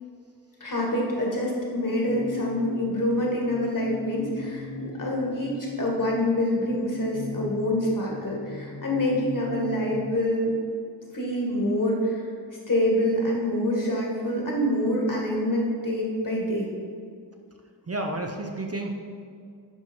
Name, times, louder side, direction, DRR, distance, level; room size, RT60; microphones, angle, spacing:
voice 1, 0.6-5.5 5.8-10.5 11.1-12.3 12.7-16.7, left 1 dB, 45° left, -2 dB, 1.9 m, -26 dB
sound 1, 2.1-10.2, left 4 dB, 75° left, 0.9 m, -39 dB
voice 2, 17.9-18.9, right 2 dB, 35° right, 3 dB, 0.6 m, -31 dB
11.0 x 4.5 x 4.6 m, 2.2 s
wide cardioid pair, 95°, 44 cm